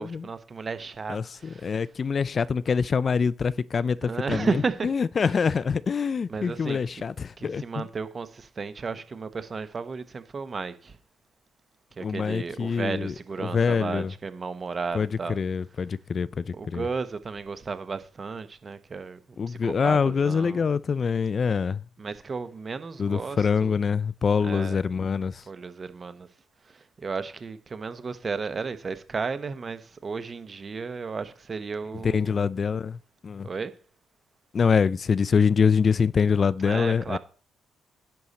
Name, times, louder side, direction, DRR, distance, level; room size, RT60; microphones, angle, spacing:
voice 1, 0.0-1.8 4.0-4.9 6.3-7.0 7.4-11.0 12.0-15.4 16.5-19.2 19.5-20.6 22.0-23.8 24.4-24.9 25.5-26.3 26.7-32.5 33.4-33.8 36.6-37.2, right 4 dB, 35° right, 1.0 m, -34 dB
voice 2, 1.1-4.5 4.8-7.9 12.0-13.1 13.4-14.1 14.9-16.9 19.4-21.8 23.0-25.4 32.0-33.0 33.2-33.5 34.5-37.2, left 6 dB, 40° left, 0.3 m, -25 dB
10.5 x 6.4 x 4.2 m
cardioid pair, 90°, 0 cm